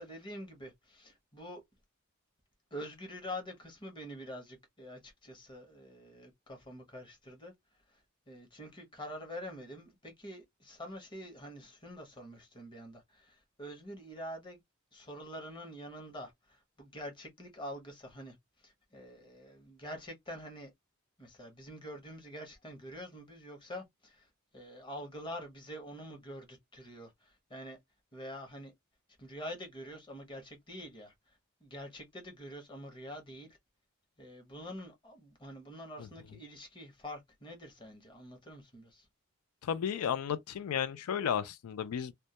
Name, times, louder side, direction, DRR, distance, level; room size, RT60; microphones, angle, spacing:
voice 1, 0.0-1.6 2.7-7.5 7.9-14.6 14.9-20.7 21.2-27.8 28.1-28.7 29.2-33.6 34.2-39.1, equal, 20° left, 0.7 m, -46 dB
voice 2, 39.6-42.1, left 8 dB, 90° left, 0.4 m, -33 dB
2.2 x 2.1 x 2.7 m
head